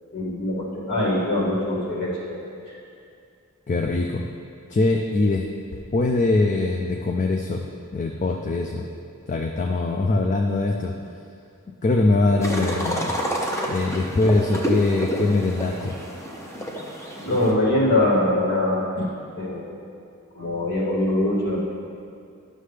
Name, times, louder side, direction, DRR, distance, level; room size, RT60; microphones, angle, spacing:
voice 1, 0.1-2.8 17.2-19.1 19.4-19.7 20.3-21.6, left 1 dB, 50° left, -7 dB, 2.2 m, -23 dB
voice 2, 3.7-4.2 4.7-5.4 5.7-7.6 7.9-8.9 9.3-10.9 11.8-13.1 13.7-16.0, left 2 dB, 35° left, 2 dB, 0.4 m, -22 dB
sound 1, 12.4-17.5, equal, 15° left, 0.8 m, -29 dB
11.0 x 6.4 x 3.3 m, 2.4 s
head